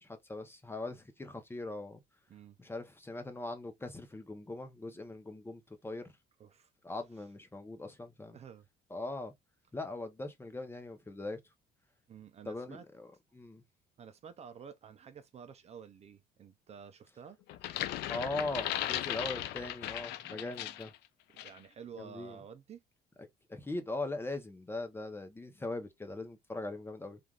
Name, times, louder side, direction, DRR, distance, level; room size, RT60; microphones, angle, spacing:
voice 1, 0.0-2.0 2.6-6.1 6.8-8.4 8.9-9.3 9.7-11.4 12.5-13.6 18.1-20.9 22.0-22.4 23.5-27.2, left 2 dB, 15° left, 0.7 m, -40 dB
voice 2, 6.4-6.7 8.3-8.7 12.1-12.9 14.0-17.4 21.3-22.8, right 7 dB, 40° right, 0.4 m, -50 dB
sound 1, 17.5-21.0 21.4-21.6, left 13 dB, 80° left, 0.4 m, -37 dB
3.3 x 2.5 x 2.3 m
cardioid pair, 110°, 17 cm